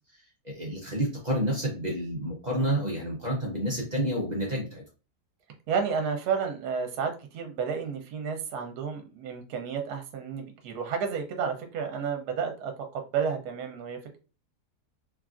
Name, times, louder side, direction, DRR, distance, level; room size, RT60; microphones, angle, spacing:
voice 1, 0.4-4.8, right 1 dB, 50° right, -1 dB, 0.5 m, -29 dB
voice 2, 5.7-14.2, right 6 dB, 75° right, 5 dB, 1.1 m, -31 dB
3.3 x 2.4 x 2.4 m, 0.33 s
omnidirectional pair, 1.7 m